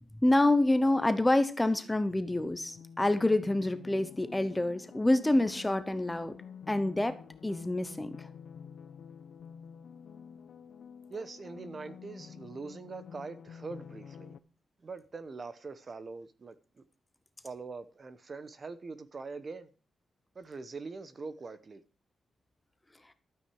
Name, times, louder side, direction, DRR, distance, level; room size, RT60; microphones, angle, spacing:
voice 1, 0.2-6.4 6.7-8.3, left 1 dB, 10° left, 0.9 m, -27 dB
sound 1, 2.3-14.4, left 7 dB, 65° left, 0.8 m, -49 dB
voice 2, 11.1-14.3 14.8-16.8 17.4-19.7 20.3-21.8, right 4 dB, 30° right, 0.9 m, -43 dB
13.0 x 9.0 x 4.8 m
wide cardioid pair, 175°, 0 cm